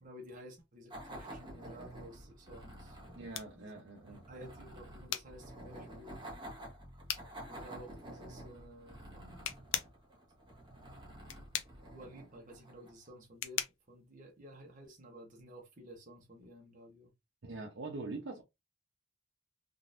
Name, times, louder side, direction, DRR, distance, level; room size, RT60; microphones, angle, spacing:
voice 1, 0.0-3.3 3.6-3.7 4.1-6.2 7.5-9.5 10.7-11.1 11.8-17.1, equal, 40° right, 1.0 m, -53 dB
sound 1, 0.9-13.1, right 1 dB, 25° right, 1.3 m, -50 dB
sound 2, 2.6-15.1, left 10 dB, 70° left, 0.5 m, -44 dB
voice 2, 3.1-4.3 17.4-18.4, right 3 dB, 65° right, 0.8 m, -43 dB
3.8 x 2.5 x 2.5 m
head